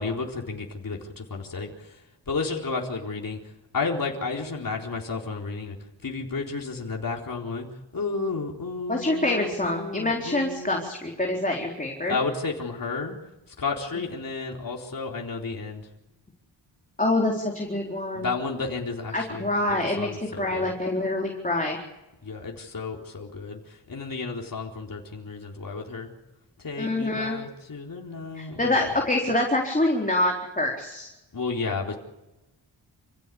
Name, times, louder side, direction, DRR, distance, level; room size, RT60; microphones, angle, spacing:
voice 1, 0.0-2.0 2.3-3.4 3.7-5.8 6.0-7.7 7.9-10.9 12.1-13.2 13.6-15.9 18.2-20.7 22.2-26.1 26.6-28.7 31.3-31.9, left 4 dB, 50° left, 0 dB, 4.1 m, -32 dB
voice 2, 8.9-12.2 17.0-18.3 19.1-20.1 20.4-21.8 26.8-27.4 28.3-31.1, left 1 dB, 20° left, 0 dB, 4.2 m, -26 dB
28.0 x 16.0 x 8.6 m, 1.0 s
cardioid pair, 65°, 44 cm